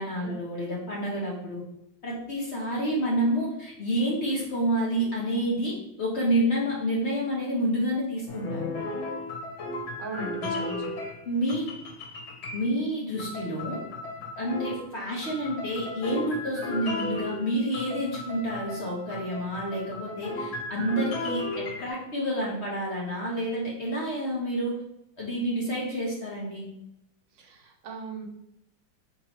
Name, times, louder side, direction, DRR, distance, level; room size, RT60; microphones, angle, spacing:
voice 1, 0.0-1.6 2.0-8.8 11.3-11.7 12.5-13.8 14.4-24.8 25.2-26.7, equal, 45° left, -4 dB, 0.9 m, -29 dB
sound 1, 8.3-11.2 11.5-12.8 13.2-14.9 15.2-21.9, left 2 dB, 85° left, 1.6 m, -35 dB
voice 2, 10.0-10.9 27.3-28.3, right 2 dB, 75° right, 1 dB, 1.5 m, -38 dB
4.7 x 3.7 x 2.9 m, 0.81 s
omnidirectional pair, 2.1 m